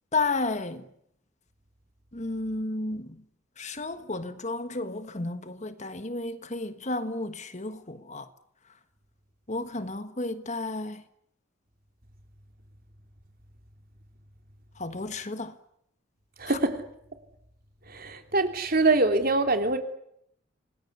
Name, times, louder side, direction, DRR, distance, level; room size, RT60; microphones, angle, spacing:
voice 1, 0.1-0.9 2.1-3.2 3.6-8.3 9.5-11.0 14.8-15.6 16.5-16.6, left 2 dB, 35° left, 1.5 m, -32 dB
voice 2, 16.4-16.8 17.9-19.8, right 2 dB, 50° right, 3.2 m, -24 dB
27.5 x 19.5 x 8.4 m
head